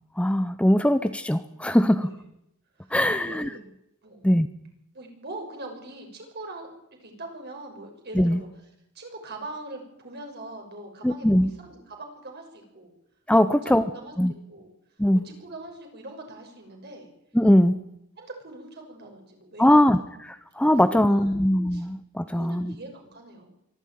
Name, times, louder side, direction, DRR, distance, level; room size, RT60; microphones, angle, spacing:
voice 1, 0.2-2.1 2.9-3.5 4.2-4.5 8.1-8.4 11.0-11.5 13.3-13.8 14.2-14.3 15.0-15.3 17.3-17.8 19.6-20.0 20.3-22.7, left 1 dB, 5° left, 11 dB, 0.7 m, -21 dB
voice 2, 2.8-3.7 4.0-4.3 4.9-6.7 7.0-8.5 8.9-12.9 13.4-14.7 15.2-17.1 17.6-17.8 18.2-19.9 20.7-21.4 21.7-21.9 22.3-23.6, right 2 dB, 50° right, 3 dB, 6.3 m, -42 dB
24.0 x 14.5 x 9.4 m, 0.82 s
head